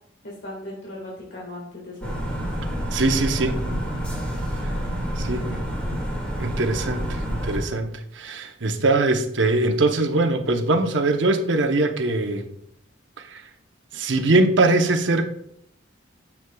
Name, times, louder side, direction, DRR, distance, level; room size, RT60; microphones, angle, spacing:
voice 1, 0.2-2.2 5.1-5.7, left 1 dB, 75° left, -4 dB, 1.7 m, -38 dB
sound 1, 2.0-7.6, equal, 5° left, 2.0 m, -28 dB
voice 2, 2.9-3.6 4.6-4.7 5.2-5.6 6.4-12.5 13.2-13.5 13.9-15.2, right 2 dB, 75° right, 6 dB, 0.8 m, -22 dB
9.4 x 7.2 x 2.3 m, 0.72 s
head